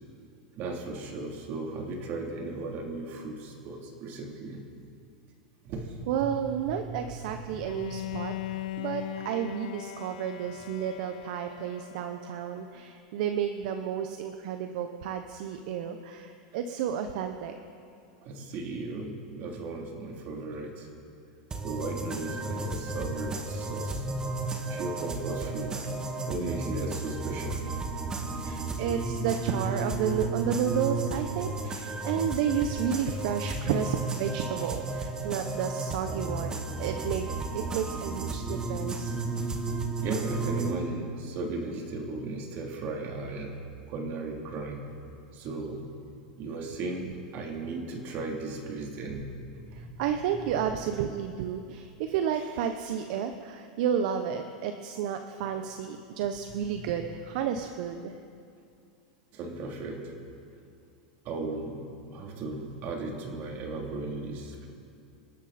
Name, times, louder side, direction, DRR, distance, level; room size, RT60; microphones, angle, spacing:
voice 1, 0.6-4.6 5.6-5.9 6.2-6.3 6.7-8.0 18.2-20.9 21.6-24.0 24.7-25.8 26.3-27.6 28.2-28.3 40.0-43.6 43.9-44.8 45.3-45.8 46.4-49.2 49.6-50.0 52.3-52.5 59.3-60.1 61.2-61.8 62.1-64.7, right 3 dB, 45° right, 0 dB, 3.4 m, -36 dB
voice 2, 6.1-17.5 28.4-39.1 49.7-58.1, right 8 dB, 65° right, 7 dB, 1.0 m, -31 dB
Bowed string instrument, 7.6-12.6, left 14 dB, 80° left, 0.8 m, -39 dB
sound 1, 21.5-40.7, right 3 dB, 15° right, 1.6 m, -33 dB
27.5 x 12.0 x 4.4 m, 2.4 s
supercardioid pair, 125°, 4 cm